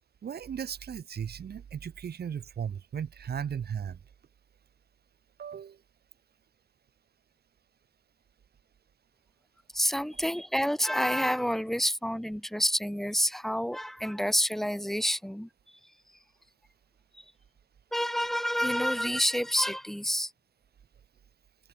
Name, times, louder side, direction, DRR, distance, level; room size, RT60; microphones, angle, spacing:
voice 1, 0.2-4.0 5.4-5.8, right 8 dB, 55° right, 4.4 m, -36 dB
voice 2, 9.7-15.5 17.1-17.2 17.9-20.3, equal, ahead, 5.0 m, -28 dB
open air
cardioid pair, 90°, 20 cm